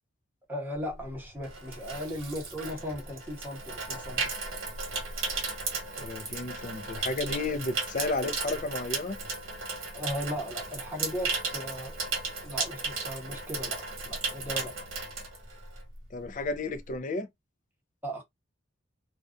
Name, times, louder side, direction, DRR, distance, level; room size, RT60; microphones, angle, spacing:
voice 1, 0.5-4.2 9.9-11.9 12.4-14.7 18.0-18.2, equal, 10° right, 0.7 m, -37 dB
Water tap faucet / Sink (filling or washing), 0.9-16.0 16.3-16.5, right 4 dB, 75° right, 1.0 m, -35 dB
voice 2, 6.0-9.2 16.1-17.3, left 3 dB, 40° left, 0.4 m, -32 dB
2.4 x 2.3 x 2.3 m
head